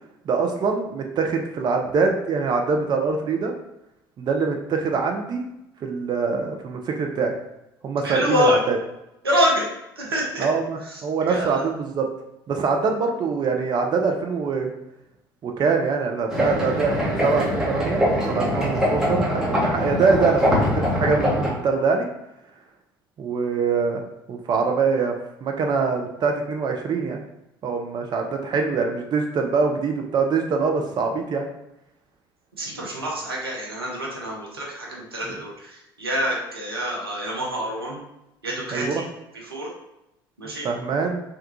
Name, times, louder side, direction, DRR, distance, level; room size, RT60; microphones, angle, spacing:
voice 1, 0.3-3.5 4.2-5.4 5.8-7.3 7.8-8.8 10.4-12.1 12.5-14.7 15.4-20.4 20.7-22.1 23.2-25.1 25.4-27.2 27.6-31.5 35.3-35.4 38.7-39.0 40.6-41.2, right 4 dB, 35° right, 3 dB, 0.5 m, -24 dB
voice 2, 8.0-8.6 9.2-9.6 10.0-10.4 11.3-11.6 32.6-35.5 36.0-38.0 38.4-39.1 39.5-39.7 40.4-40.7, equal, 85° right, -3 dB, 0.6 m, -25 dB
sound 1, 16.3-21.5, equal, 5° right, 1.0 m, -23 dB
3.5 x 2.2 x 2.8 m, 0.88 s
figure-of-eight pair, 55°, 12 cm